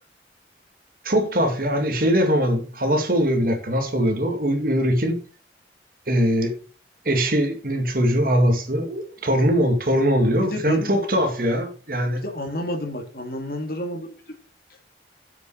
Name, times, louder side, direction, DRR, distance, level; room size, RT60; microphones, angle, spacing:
voice 1, 1.0-5.2 6.1-6.5 7.1-12.2, equal, 55° right, 2.2 m, -21 dB
voice 2, 10.4-11.0 12.1-14.4, left 1 dB, 55° left, 2.5 m, -30 dB
7.8 x 6.8 x 6.3 m
head